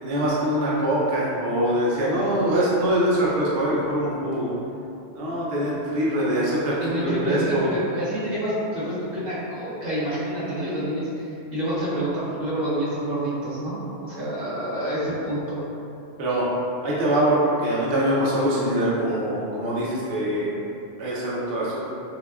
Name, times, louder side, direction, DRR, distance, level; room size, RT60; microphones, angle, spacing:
voice 1, 0.0-4.5 5.1-7.6 16.2-16.5 16.8-20.5 21.0-21.9, right 1 dB, 55° right, -7 dB, 0.9 m, -23 dB
voice 2, 6.8-15.7, right 1 dB, 90° right, -10 dB, 1.5 m, -27 dB
5.8 x 2.2 x 2.3 m, 2.7 s
omnidirectional pair, 1.3 m